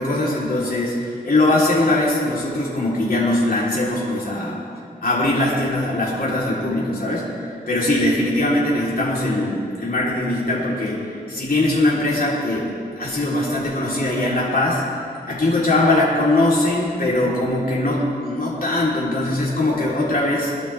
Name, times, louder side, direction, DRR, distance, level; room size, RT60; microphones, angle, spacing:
voice 1, 0.0-4.6 5.0-7.2 7.7-12.7 13.0-14.8 15.3-20.5, left 1 dB, 60° left, -7 dB, 3.8 m, -21 dB
23.0 x 12.0 x 3.5 m, 2.4 s
wide cardioid pair, 55°, 17 cm